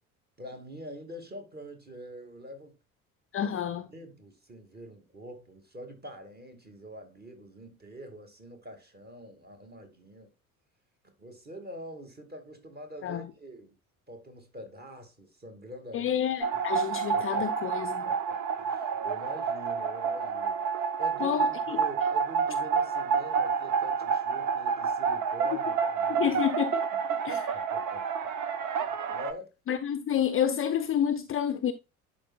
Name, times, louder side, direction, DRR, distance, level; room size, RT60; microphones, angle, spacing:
voice 1, 0.4-2.7 3.9-10.3 11.2-13.8 14.1-16.2 16.5-16.6 16.9-17.5 18.0-26.4 26.9-28.1 29.1-29.5, equal, 25° right, 2.1 m, -45 dB
voice 2, 3.3-3.9 13.0-13.3 15.9-18.1 21.2-21.8 26.1-26.8 27.3-27.4 29.7-31.7, left 9 dB, 30° left, 0.6 m, -29 dB
sound 1, 16.4-29.3, right 6 dB, 45° right, 1.0 m, -29 dB
11.0 x 4.4 x 2.3 m
figure-of-eight pair, 55°, 42 cm